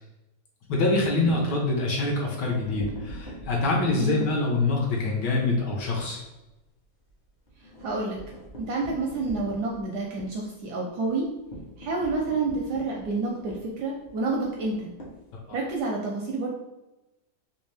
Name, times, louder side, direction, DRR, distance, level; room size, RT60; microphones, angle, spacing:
voice 1, 0.7-6.2 15.5-15.6, left 2 dB, 65° left, -2 dB, 1.3 m, -25 dB
sound 1, 2.7-5.7 6.0-6.2 6.5-6.6 6.9-15.8, equal, 40° left, 0.7 m, -43 dB
voice 2, 7.8-8.2 8.6-11.3 11.8-14.9 15.5-16.5, right 3 dB, 75° right, -1 dB, 1.0 m, -29 dB
3.5 x 2.8 x 3.3 m, 0.99 s
omnidirectional pair, 2.1 m